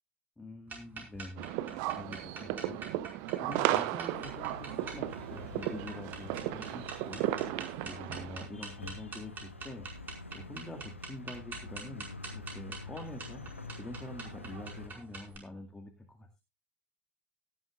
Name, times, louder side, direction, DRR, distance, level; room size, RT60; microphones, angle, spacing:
voice 1, 0.4-2.8 3.4-7.3 7.8-9.9 10.3-13.4 13.8-16.4, left 2 dB, 10° left, 2 dB, 2.1 m, -46 dB
sound 1, 0.7-15.4, right 4 dB, 30° right, 5.1 m, -46 dB
sound 2, 1.4-8.5, right 14 dB, 50° right, 0.9 m, -35 dB
sound 3, 4.1-14.9, left 3 dB, 85° left, 0.9 m, -47 dB
17.5 x 11.0 x 2.5 m, 0.25 s
figure-of-eight pair, 75°, 7 cm